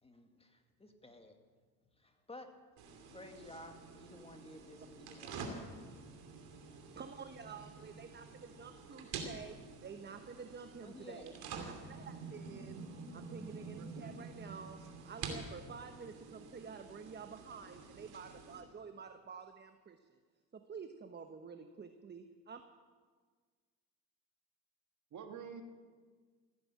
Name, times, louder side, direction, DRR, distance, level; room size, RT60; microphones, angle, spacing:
voice 1, 0.0-1.4 1.9-6.4 10.8-11.3, left 1 dB, 15° left, 4 dB, 2.2 m, -55 dB
sound 1, 2.8-18.6, right 4 dB, 70° right, 2.9 m, -48 dB
voice 2, 7.0-9.6 9.8-20.2 20.5-22.6, right 6 dB, 25° right, 8 dB, 1.0 m, -50 dB
voice 3, 13.7-14.1 25.1-25.6, right 7 dB, 45° right, 5 dB, 2.0 m, -48 dB
16.5 x 9.6 x 8.6 m, 1.5 s
supercardioid pair, 75°, 39 cm